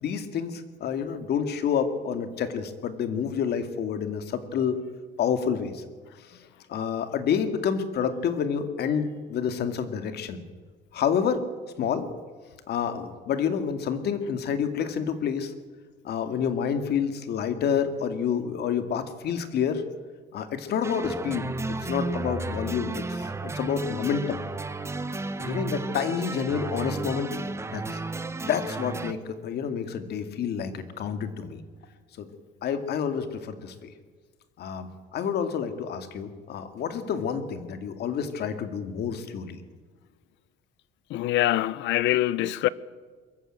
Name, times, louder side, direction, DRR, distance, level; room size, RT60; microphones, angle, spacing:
voice 1, 0.0-4.8 5.2-5.8 6.3-10.4 10.9-11.4 11.8-12.1 12.7-15.5 16.0-19.8 20.3-24.4 25.4-27.4 27.7-28.0 28.4-31.6 32.2-32.3 32.6-33.9 34.6-39.6, left 7 dB, 60° left, 2.3 m, -29 dB
sound 1, 20.8-29.1, right 3 dB, 15° right, 1.1 m, -33 dB
voice 2, 41.1-42.7, left 14 dB, 75° left, 0.9 m, -24 dB
22.0 x 14.5 x 9.0 m
cardioid pair, 135°, 19 cm